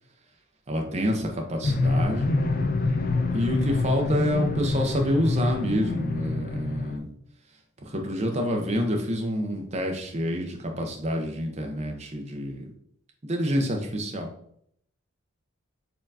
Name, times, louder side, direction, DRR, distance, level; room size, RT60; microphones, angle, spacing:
voice 1, 0.7-2.4 3.3-7.1 7.8-12.6 13.2-14.3, equal, 30° right, 2 dB, 0.6 m, -27 dB
sound 1, 1.6-7.0, left 3 dB, 40° left, 0.4 m, -26 dB
4.3 x 3.6 x 2.7 m, 0.68 s
head